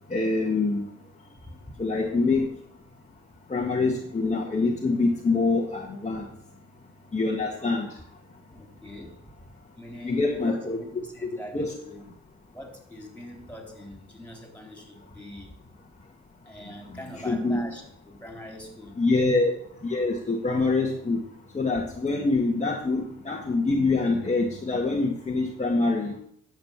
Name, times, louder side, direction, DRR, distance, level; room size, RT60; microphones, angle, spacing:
voice 1, 0.1-0.8 1.8-2.5 3.5-6.2 7.1-7.9 10.0-10.8 11.5-11.7 17.2-17.7 19.0-19.5 19.8-21.2 21.6-26.2, left 3 dB, 25° left, 0 dB, 1.8 m, -25 dB
voice 2, 8.5-9.2 9.8-12.0 12.5-15.5 16.5-19.0, equal, 5° left, 3 dB, 4.1 m, -43 dB
10.5 x 7.7 x 7.3 m, 0.68 s
cardioid pair, 90°, 30 cm